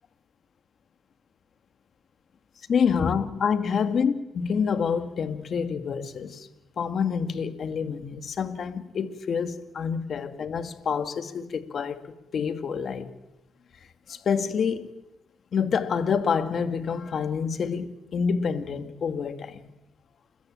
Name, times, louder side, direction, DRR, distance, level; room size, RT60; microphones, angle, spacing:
voice 1, 2.7-6.5 6.8-13.1 14.1-14.9 15.5-19.7, left 6 dB, 55° left, 2.2 m, -27 dB
28.5 x 21.5 x 8.8 m
cardioid pair, 90°, 0 cm